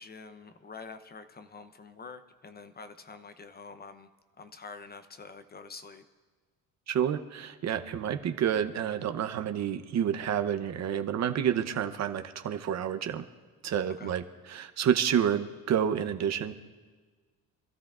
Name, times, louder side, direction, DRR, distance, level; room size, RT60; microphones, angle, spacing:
voice 1, 0.0-4.1 4.4-6.0 14.0-14.2, left 4 dB, 25° left, 9 dB, 0.7 m, -46 dB
voice 2, 6.9-13.3 13.6-16.5, right 9 dB, 45° right, 9 dB, 0.8 m, -29 dB
27.0 x 13.0 x 2.5 m, 1.4 s
cardioid pair, 110°, 37 cm